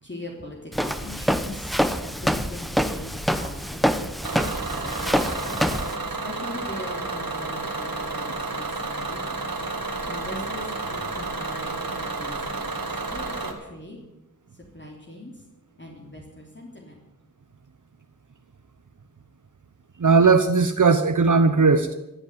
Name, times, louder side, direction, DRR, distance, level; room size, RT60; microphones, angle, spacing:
voice 1, 0.0-5.6 6.0-9.4 10.0-12.8 13.1-14.0 14.7-15.4 15.8-17.0, left 1 dB, 35° left, -2 dB, 3.1 m, -41 dB
Walk footsteps, 0.7-5.9, equal, ahead, 1.0 m, -26 dB
Bus / Engine, 4.2-13.5, right 3 dB, 90° right, 2.1 m, -31 dB
voice 2, 20.0-21.9, right 4 dB, 60° right, 9 dB, 0.9 m, -18 dB
15.0 x 8.4 x 9.4 m, 0.96 s
wide cardioid pair, 60°, 34 cm